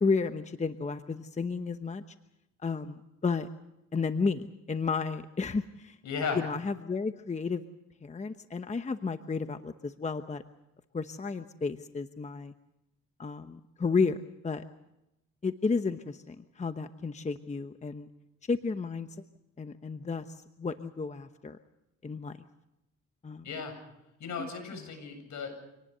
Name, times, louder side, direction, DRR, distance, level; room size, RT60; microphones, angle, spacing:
voice 1, 0.0-2.0 2.6-3.5 3.9-6.0 6.3-7.6 8.0-10.4 10.9-12.5 13.2-14.2 14.4-14.6 15.4-18.1 18.5-19.1 19.6-21.6 22.0-22.4 23.2-23.5 24.4-24.5, left 4 dB, 25° left, 9 dB, 1.0 m, -32 dB
voice 2, 6.0-6.4 23.4-23.7 24.2-25.5, left 5 dB, 70° left, 6 dB, 8.0 m, -35 dB
26.5 x 19.0 x 6.9 m, 0.89 s
cardioid pair, 90°, 30 cm